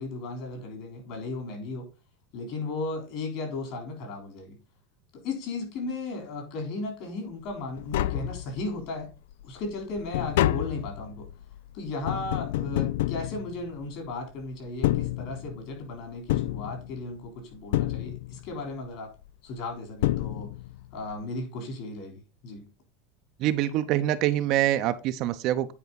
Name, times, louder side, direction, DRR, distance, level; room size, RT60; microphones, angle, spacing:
voice 1, 0.0-1.9 2.3-4.6 5.1-9.1 9.4-11.3 11.7-19.1 19.4-20.5 20.9-22.6, left 3 dB, 50° left, 3.8 m, -35 dB
Tap, 7.5-7.6 7.8-8.9 9.3-14.1 14.7-15.7 16.3-17.3 17.7-18.6 19.6-19.7 20.0-20.9 21.1-21.2, left 15 dB, 80° left, 0.3 m, -29 dB
voice 2, 23.4-25.7, right 13 dB, 45° right, 0.7 m, -25 dB
9.4 x 4.7 x 4.1 m
supercardioid pair, 145°, 0 cm